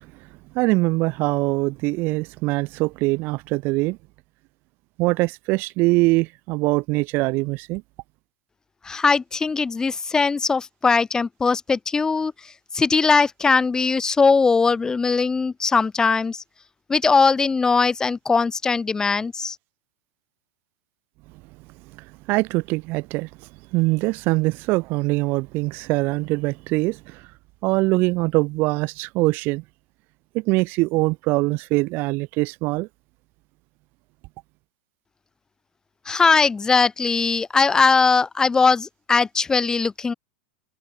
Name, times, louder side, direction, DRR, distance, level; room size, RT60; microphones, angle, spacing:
voice 1, 0.5-4.0 5.0-7.8 22.3-23.3 23.7-27.2 27.6-29.6 30.3-32.9, right 23 dB, 45° right, 0.8 m, -22 dB
voice 2, 8.8-16.4 16.9-19.6 36.0-40.1, left 4 dB, 15° left, 5.1 m, -20 dB
hypercardioid pair, 130°, 5 cm